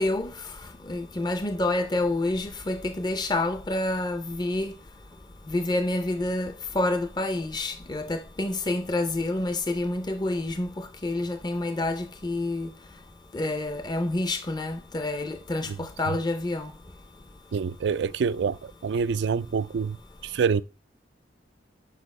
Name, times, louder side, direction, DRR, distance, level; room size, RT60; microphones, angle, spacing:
voice 1, 0.0-4.7 5.5-12.7 13.3-16.7, left 2 dB, 25° left, 0.6 m, -28 dB
voice 2, 17.5-20.0 20.2-20.6, right 6 dB, 75° right, 0.4 m, -26 dB
6.4 x 5.4 x 5.3 m
head